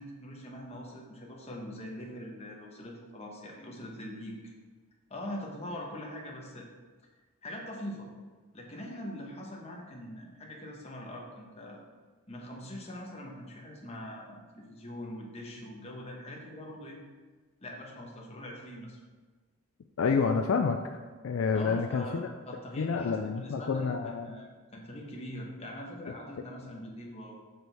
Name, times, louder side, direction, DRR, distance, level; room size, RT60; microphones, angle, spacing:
voice 1, 0.0-4.5 5.1-6.7 7.4-8.1 8.5-11.8 12.3-17.0 17.6-19.0 21.5-27.3, left 1 dB, 30° left, -1 dB, 1.1 m, -42 dB
voice 2, 20.0-20.9 21.2-24.3, left 5 dB, 65° left, 6 dB, 0.3 m, -29 dB
6.6 x 6.3 x 3.4 m, 1.4 s
head